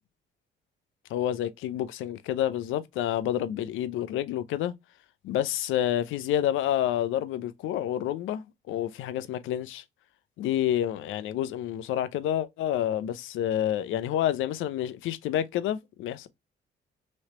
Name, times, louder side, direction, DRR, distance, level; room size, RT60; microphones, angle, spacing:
voice 1, 1.1-4.7 5.2-9.8 10.4-16.3, left 11 dB, 85° left, 0.5 m, -29 dB
3.1 x 2.9 x 2.9 m
cardioid pair, 90°, 20 cm